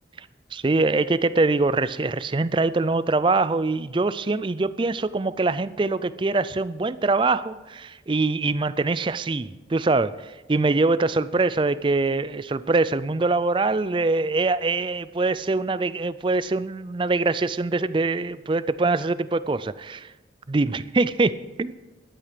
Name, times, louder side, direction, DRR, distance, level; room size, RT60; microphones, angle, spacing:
voice 1, 0.5-20.1 20.5-21.7, right 3 dB, 30° right, 16 dB, 0.4 m, -23 dB
15.5 x 12.0 x 5.1 m, 1.1 s
head